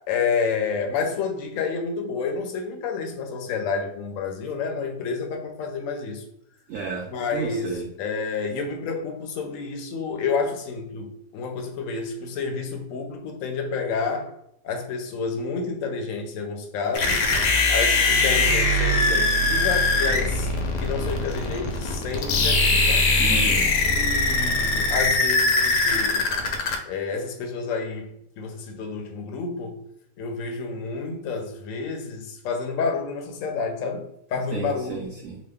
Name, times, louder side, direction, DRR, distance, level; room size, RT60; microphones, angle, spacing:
voice 1, 0.1-6.2 7.1-14.3 14.6-17.2 17.7-20.5 20.8-23.1 23.6-26.3 26.9-29.8 30.2-35.1, left 5 dB, 65° left, 3 dB, 0.9 m, -29 dB
voice 2, 6.7-7.9 23.2-23.6 34.5-35.4, right 5 dB, 65° right, -2 dB, 0.8 m, -32 dB
sound 1, 16.9-26.8, left 2 dB, 90° left, 1.2 m, -21 dB
3.0 x 2.2 x 3.4 m, 0.76 s
omnidirectional pair, 1.7 m